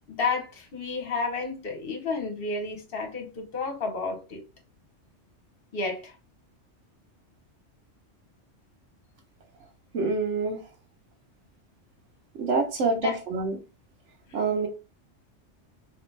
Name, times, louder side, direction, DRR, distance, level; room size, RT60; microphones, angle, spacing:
voice 1, 0.1-4.4 5.7-6.1 12.9-13.2, left 4 dB, 55° left, 1.2 m, -31 dB
voice 2, 9.9-10.6 12.3-13.6 14.3-14.7, right 3 dB, 85° right, 1.3 m, -26 dB
3.1 x 3.0 x 3.2 m
omnidirectional pair, 1.2 m